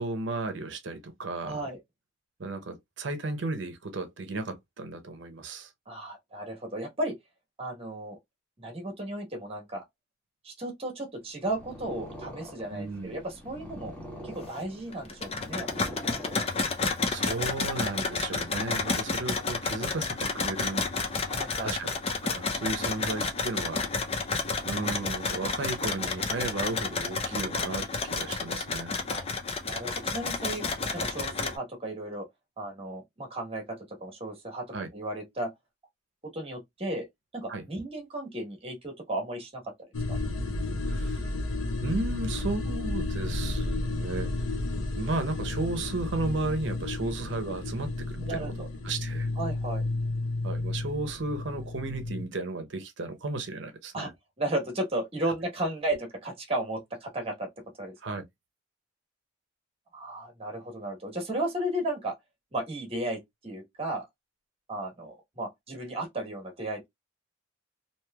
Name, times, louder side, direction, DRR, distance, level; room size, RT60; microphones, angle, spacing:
voice 1, 0.0-1.7 2.4-5.7 12.7-13.1 17.1-20.9 21.6-21.9 22.2-24.3 24.6-28.9 34.7-34.9 37.5-37.6 40.9-41.3 41.8-44.3 45.0-48.5 48.8-49.3 50.4-54.1 58.0-58.2, right 2 dB, 65° right, 0.7 m, -34 dB
voice 2, 1.4-1.8 5.9-7.1 7.6-8.2 8.6-9.8 10.4-13.9 14.2-15.9 21.3-21.7 29.1-29.2 29.6-30.6 30.9-32.3 32.6-34.7 34.9-35.5 36.3-37.1 37.3-39.6 40.1-40.2 48.2-48.7 49.4-49.9 53.9-54.1 54.4-57.5 57.8-57.9 59.9-62.1 62.5-64.1 64.7-66.9, right 1 dB, 30° right, 1.1 m, -34 dB
Purr, 11.3-17.0, left 1 dB, 10° left, 1.0 m, -44 dB
sound 1, 14.9-31.6, left 4 dB, 30° left, 0.5 m, -31 dB
sound 2, 39.9-52.2, left 2 dB, 85° left, 0.6 m, -32 dB
3.1 x 2.7 x 2.2 m
head